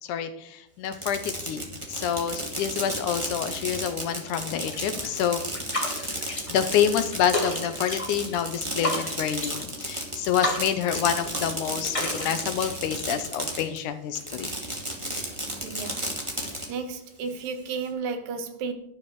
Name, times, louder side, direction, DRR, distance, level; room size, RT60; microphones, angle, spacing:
voice 1, 0.0-5.4 6.2-14.5, left 9 dB, 75° left, 10 dB, 2.0 m, -28 dB
Fireworks, 0.8-13.8 14.1-16.7, right 1 dB, 10° right, 1.4 m, -33 dB
sound 1, 4.5-5.1 5.4-6.7 7.0-8.4 8.7-9.7 10.2-11.4 11.7-13.0, left 1 dB, 20° left, 1.0 m, -32 dB
voice 2, 15.6-16.0 16.7-18.7, right 5 dB, 75° right, 8 dB, 2.9 m, -33 dB
11.5 x 11.5 x 4.6 m, 0.76 s
omnidirectional pair, 4.1 m